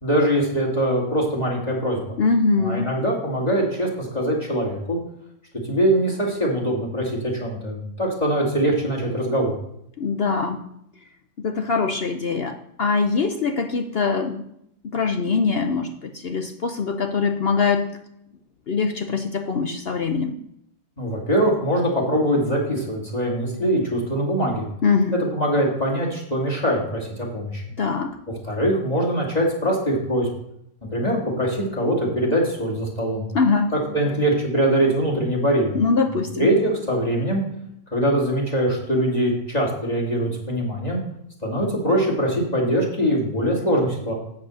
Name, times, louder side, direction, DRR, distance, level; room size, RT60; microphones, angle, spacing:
voice 1, 0.0-2.2 2.6-5.0 5.6-9.5 21.0-24.6 25.1-27.6 28.3-30.3 30.9-33.3 33.9-35.7 36.1-37.4 37.9-41.0 41.4-44.1, right 1 dB, 20° left, -3 dB, 2.5 m, -22 dB
voice 2, 2.2-2.9 10.0-10.7 11.4-14.5 14.8-17.9 18.7-20.4 24.8-25.1 27.8-28.1 33.3-33.7 35.7-36.5, left 4 dB, 70° left, 5 dB, 0.5 m, -23 dB
8.3 x 7.3 x 6.3 m, 0.76 s
omnidirectional pair, 2.0 m